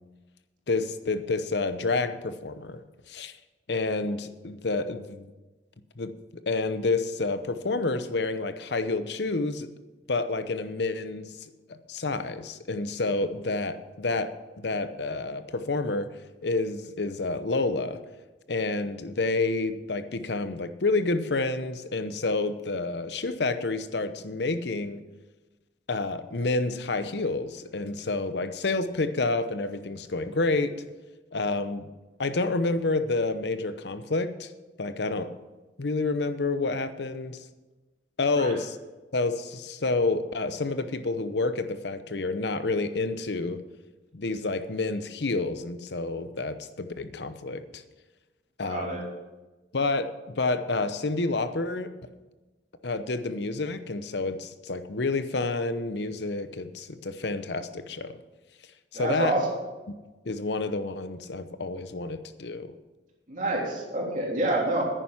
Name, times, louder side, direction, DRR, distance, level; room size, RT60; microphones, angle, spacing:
voice 1, 0.7-2.8 3.1-3.3 3.7-5.3 6.0-6.1 6.5-9.7 10.1-11.5 11.9-14.3 14.6-16.1 16.4-18.0 18.5-25.0 25.9-30.8 31.3-31.9 32.2-34.5 34.8-35.3 35.8-37.4 38.2-38.8 39.1-43.6 44.1-47.8 48.6-49.1 49.7-51.9 52.8-58.1 58.9-59.3 60.2-62.7, left 3 dB, 65° left, 11 dB, 0.8 m, -29 dB
voice 2, 48.6-49.1 58.9-59.5 63.3-64.8, right 1 dB, 45° right, -2 dB, 3.1 m, -27 dB
10.0 x 10.0 x 6.0 m, 1.2 s
head